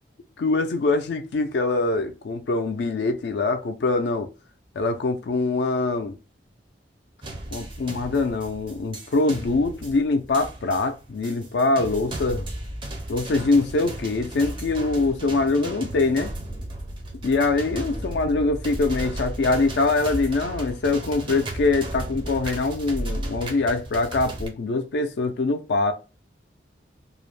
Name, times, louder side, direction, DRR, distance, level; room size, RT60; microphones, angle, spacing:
voice 1, 0.4-4.3 4.8-6.1 7.5-12.5 13.1-16.3 17.2-25.9, left 3 dB, 70° left, 0.4 m, -23 dB
sound 1, 7.2-24.5, right 1 dB, 30° right, 0.4 m, -35 dB
2.4 x 2.0 x 3.1 m
head